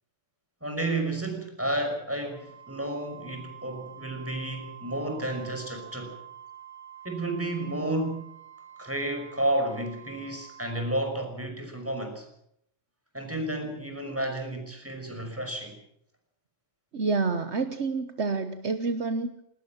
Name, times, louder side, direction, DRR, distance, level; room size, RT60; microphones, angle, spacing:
voice 1, 0.6-6.1 7.0-8.3 8.8-12.2 13.1-15.7, right 1 dB, 10° right, 4 dB, 5.8 m, -31 dB
Wind instrument woodwind instrument, 2.3-10.9, right 9 dB, 50° right, 5.4 m, -47 dB
voice 2, 16.9-19.3, right 4 dB, 65° right, 10 dB, 1.5 m, -28 dB
21.0 x 19.5 x 7.4 m, 0.72 s
omnidirectional pair, 1.2 m